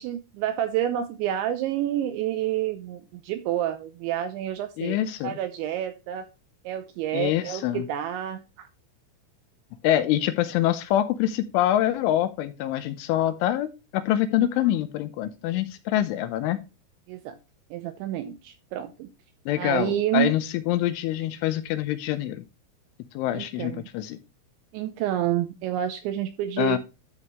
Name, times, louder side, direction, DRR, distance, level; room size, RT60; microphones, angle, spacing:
voice 1, 0.0-5.0 5.2-6.3 6.6-8.7 17.1-17.4 17.7-19.1 19.6-20.3 23.3-23.9 24.7-26.8, right 11 dB, 90° right, 2.7 m, -29 dB
voice 2, 4.8-5.4 7.1-7.8 9.8-16.6 19.5-22.4 23.1-24.2 26.6-26.8, left 12 dB, 80° left, 3.0 m, -25 dB
12.5 x 5.4 x 3.1 m
omnidirectional pair, 5.9 m